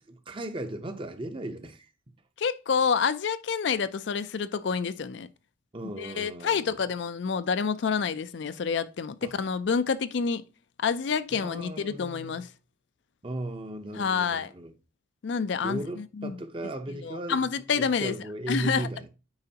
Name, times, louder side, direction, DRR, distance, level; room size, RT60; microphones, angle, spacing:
voice 1, 0.1-1.9 5.7-6.8 9.2-9.3 11.3-12.4 13.2-14.7 15.6-19.1, right 1 dB, 25° right, 0.7 m, -36 dB
voice 2, 2.4-5.3 6.0-10.4 10.8-12.5 14.0-14.5 15.2-16.4 17.0-18.1 18.5-18.9, left 6 dB, 60° left, 0.4 m, -28 dB
8.6 x 4.9 x 2.8 m
head